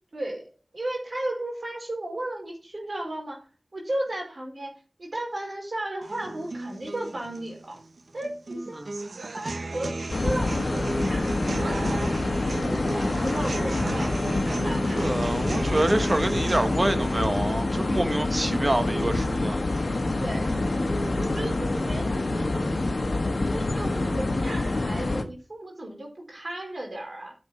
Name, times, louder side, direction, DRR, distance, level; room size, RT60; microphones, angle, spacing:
voice 1, 0.1-3.5 3.7-4.7 5.0-7.8 8.1-8.9 9.3-15.1 20.2-20.7 21.0-22.7 23.3-27.3, right 1 dB, 60° right, 4.8 m, -35 dB
sound 1, 6.0-22.0, right 2 dB, 75° right, 1.0 m, -36 dB
sound 2, 10.1-25.2, left 2 dB, 65° left, 1.4 m, -26 dB
voice 2, 15.0-19.6, right 1 dB, 35° right, 1.3 m, -26 dB
10.5 x 7.2 x 4.3 m
wide cardioid pair, 45°, 0 cm